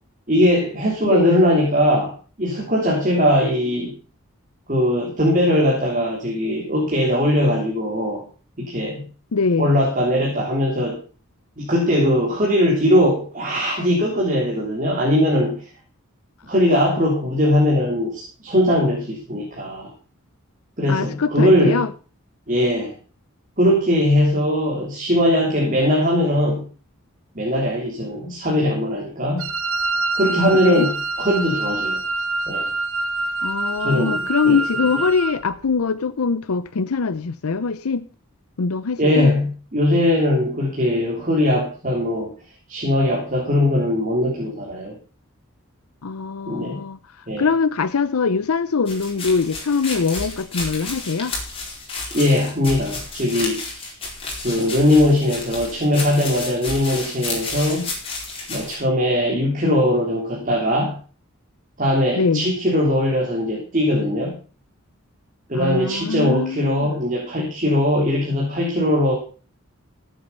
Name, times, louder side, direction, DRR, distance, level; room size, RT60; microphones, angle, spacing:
voice 1, 0.3-3.9 4.7-8.3 8.6-9.1 9.6-11.0 11.6-15.6 16.4-19.9 20.8-21.8 22.5-23.0 23.6-26.7 27.3-29.5 30.1-32.0 32.5-32.7 33.8-34.6 39.0-42.3 42.7-44.9 46.5-46.8 47.3-47.5 52.1-53.9 54.4-57.9 58.5-61.0 61.8-64.4 65.5-69.1, left 1 dB, 35° right, 3.4 m, -20 dB
voice 2, 1.0-1.5 9.3-9.7 20.9-21.9 30.5-30.9 33.4-38.1 38.6-39.3 46.0-51.4 62.2-62.5 65.5-67.0, left 5 dB, 85° left, 0.6 m, -23 dB
Wind instrument woodwind instrument, 29.4-35.4, right 2 dB, 75° right, 1.8 m, -25 dB
sound 1, 48.9-58.7, left 3 dB, 25° left, 4.7 m, -31 dB
14.5 x 8.4 x 5.6 m
head